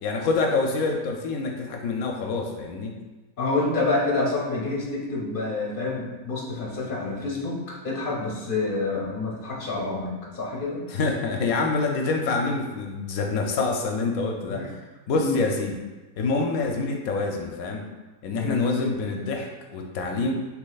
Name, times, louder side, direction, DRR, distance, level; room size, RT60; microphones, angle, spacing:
voice 1, 0.0-2.9 10.9-14.6 15.1-15.7 16.2-17.8 18.2-20.3, left 3 dB, 75° left, 2 dB, 1.0 m, -26 dB
voice 2, 3.4-10.9 14.5-14.7 15.1-15.4 18.3-18.7, left 3 dB, 40° left, -3 dB, 1.0 m, -28 dB
6.3 x 3.1 x 2.3 m, 1.2 s
omnidirectional pair, 1.5 m